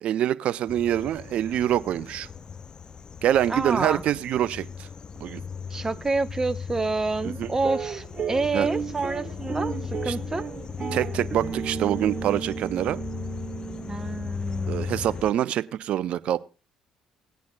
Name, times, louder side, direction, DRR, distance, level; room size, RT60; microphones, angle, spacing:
voice 1, 0.0-2.3 3.2-4.9 5.2-5.4 7.2-7.5 8.5-8.7 10.1-10.2 10.9-13.0 14.7-16.4, right 11 dB, 60° right, 16 dB, 0.5 m, -25 dB
sound 1, 0.7-15.3, left 6 dB, 40° left, 0.5 m, -37 dB
voice 2, 3.5-4.0 5.7-10.5 13.9-14.8, right 3 dB, 25° right, 11 dB, 1.0 m, -28 dB
sound 2, 7.6-14.2, right 6 dB, 40° right, 1.6 m, -34 dB
18.5 x 9.3 x 2.3 m, 0.32 s
hypercardioid pair, 55°, 2 cm